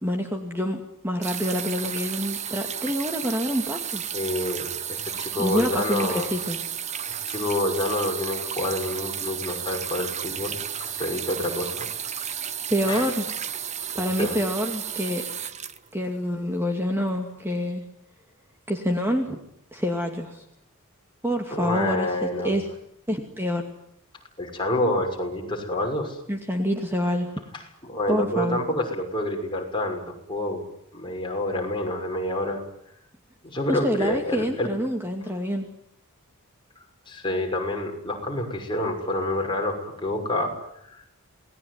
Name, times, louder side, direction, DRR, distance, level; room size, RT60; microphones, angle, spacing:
voice 1, 0.0-4.0 5.4-6.6 12.7-13.3 14.0-15.2 15.9-17.8 18.7-19.4 19.7-20.4 21.2-22.6 23.1-23.7 26.3-27.3 28.1-28.6 33.7-35.6, equal, 10° right, 4 dB, 2.4 m, -27 dB
sound 1, 1.2-16.6 17.5-17.6, right 8 dB, 30° right, 1.1 m, -33 dB
voice 2, 4.1-6.3 7.3-10.5 10.8-11.9 12.9-13.1 13.9-14.4 21.5-22.6 24.4-26.2 27.5-30.7 30.9-32.6 33.4-34.7 37.1-41.1, left 1 dB, 20° left, 1 dB, 6.2 m, -28 dB
28.0 x 20.0 x 9.8 m, 0.75 s
head